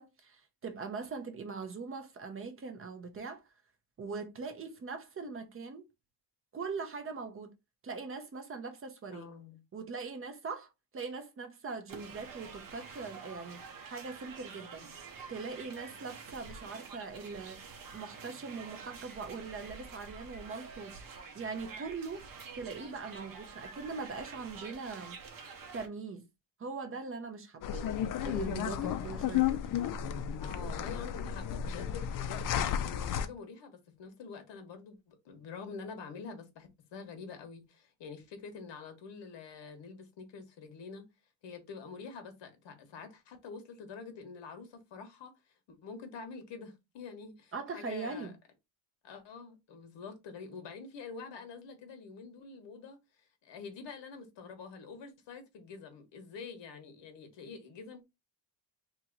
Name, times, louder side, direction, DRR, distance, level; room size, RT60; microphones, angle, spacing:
voice 1, 0.0-3.4 4.0-5.8 6.5-7.5 7.8-9.3 9.7-13.6 13.9-14.8 15.3-17.6 17.9-20.9 21.3-22.2 22.5-25.2 25.7-26.3 26.6-27.9 28.2-29.5 47.5-48.3, right 4 dB, 30° right, 0.7 m, -41 dB
voice 2, 9.1-9.6 14.5-14.9 30.4-41.0 41.4-45.3 45.7-48.3 49.0-58.0, left 5 dB, 65° left, 1.2 m, -47 dB
sound 1, 11.9-25.9, right 5 dB, 45° right, 1.0 m, -48 dB
sound 2, 27.6-33.3, left 9 dB, 45° left, 0.4 m, -33 dB
2.9 x 2.9 x 3.8 m
cardioid pair, 145°, 46 cm